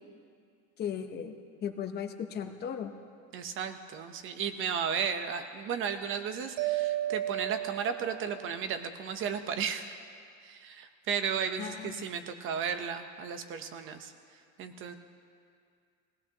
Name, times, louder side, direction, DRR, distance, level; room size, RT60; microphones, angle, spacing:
voice 1, 0.8-1.4 1.6-2.9 11.6-12.0, left 8 dB, 35° left, 6 dB, 0.9 m, -36 dB
voice 2, 3.3-10.0 10.4-14.1 14.6-14.9, right 7 dB, 45° right, 8 dB, 0.9 m, -34 dB
Mallet percussion, 6.6-8.6, right 14 dB, 70° right, 0.9 m, -33 dB
22.0 x 17.0 x 3.0 m, 2.3 s
cardioid pair, 165°, 29 cm